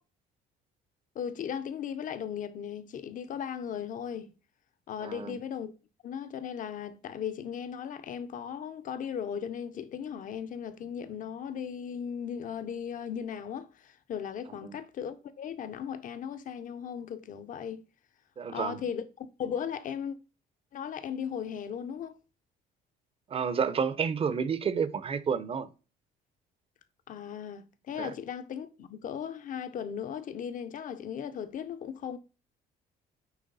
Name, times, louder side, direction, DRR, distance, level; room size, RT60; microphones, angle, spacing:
voice 1, 1.1-4.3 4.9-5.7 6.0-17.9 18.5-20.2 20.7-22.2 27.1-32.2, left 8 dB, 50° left, 0.8 m, -37 dB
voice 2, 5.0-5.4 14.6-14.8 18.4-18.8 23.3-25.7 28.0-28.1, right 6 dB, 35° right, 0.7 m, -30 dB
9.0 x 3.1 x 4.0 m
cardioid pair, 110°, 17 cm